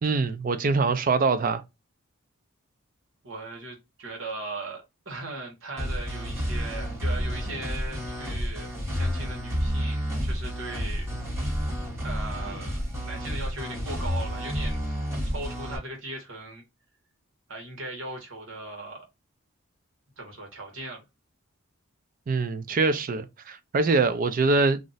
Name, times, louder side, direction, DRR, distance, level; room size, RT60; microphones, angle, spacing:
voice 1, 0.0-1.6 22.3-24.8, right 4 dB, 40° right, 0.3 m, -24 dB
voice 2, 3.2-11.1 12.0-16.6 17.5-19.1 20.2-21.0, right 2 dB, 70° right, 1.1 m, -39 dB
sound 1, 5.8-15.8, equal, 15° right, 1.3 m, -30 dB
2.5 x 2.0 x 3.8 m
head